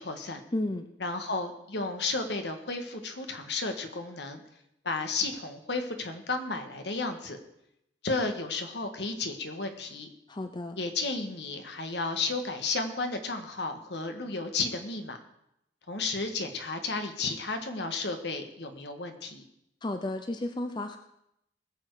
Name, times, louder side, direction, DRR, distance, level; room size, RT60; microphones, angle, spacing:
voice 1, 0.0-0.4 1.0-4.4 4.8-7.4 8.0-10.1 10.8-15.2 15.9-19.4, left 3 dB, 65° left, 6 dB, 1.6 m, -33 dB
voice 2, 0.5-0.9 10.3-10.8 19.8-21.0, left 1 dB, 25° left, 7 dB, 0.6 m, -32 dB
20.0 x 7.2 x 4.8 m, 0.81 s
head